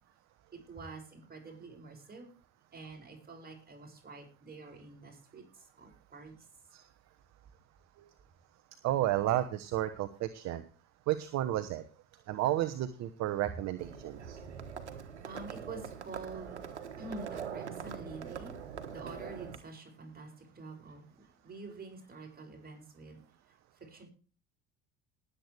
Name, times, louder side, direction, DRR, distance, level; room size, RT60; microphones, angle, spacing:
voice 1, 0.5-2.3 2.7-6.5 14.3-23.2 23.5-24.1, right 3 dB, 25° right, 2 dB, 6.4 m, -48 dB
voice 2, 8.8-10.6 11.1-11.8 12.3-14.4, right 13 dB, 50° right, 10 dB, 1.1 m, -32 dB
Livestock farm animals working animals, 13.8-19.6, right 7 dB, 85° right, 1.4 m, -43 dB
19.5 x 8.3 x 3.4 m, 0.36 s
hypercardioid pair, 65°, 34 cm